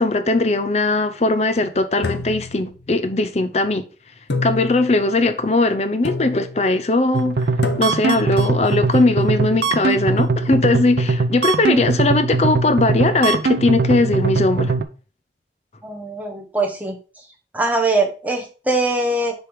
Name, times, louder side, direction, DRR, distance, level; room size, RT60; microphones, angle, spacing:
voice 1, 0.0-3.9 4.4-7.5 7.8-14.7, left 2 dB, 35° left, 0.6 m, -19 dB
sound 1, 2.0-3.2 4.3-5.1 6.0-6.7 7.6-8.3, left 3 dB, 80° left, 0.9 m, -28 dB
sound 2, 7.1-14.8, right 3 dB, 70° right, 0.5 m, -21 dB
voice 2, 15.8-17.0 17.5-19.3, right 2 dB, 10° right, 1.0 m, -22 dB
6.7 x 3.5 x 4.6 m
head